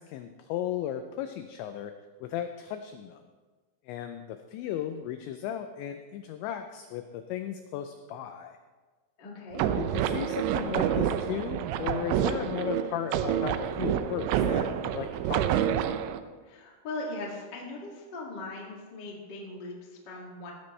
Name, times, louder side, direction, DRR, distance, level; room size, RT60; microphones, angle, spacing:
voice 1, 0.0-1.9 2.2-3.2 3.9-8.6 9.8-15.7, left 10 dB, 85° left, 7 dB, 2.6 m, -36 dB
voice 2, 9.2-9.6 16.4-20.5, left 2 dB, 50° left, -2 dB, 1.2 m, -39 dB
sound 1, 9.5-16.2, right 9 dB, 85° right, 2.6 m, -28 dB
17.0 x 12.5 x 3.2 m, 1.4 s
omnidirectional pair, 5.9 m